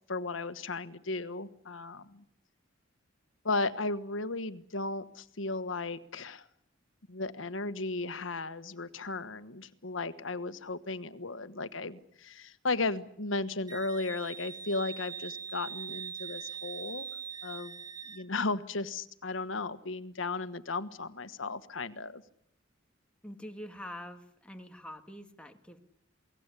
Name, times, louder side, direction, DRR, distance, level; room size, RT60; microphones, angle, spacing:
voice 1, 0.1-2.2 3.4-6.5 7.1-17.1 17.4-22.2, left 3 dB, 85° left, 12 dB, 1.4 m, -35 dB
Wind instrument woodwind instrument, 13.7-18.2, right 7 dB, 20° right, 1.2 m, -42 dB
voice 2, 23.2-25.8, left 1 dB, 5° left, 5 dB, 2.0 m, -45 dB
28.0 x 19.0 x 8.4 m, 0.72 s
head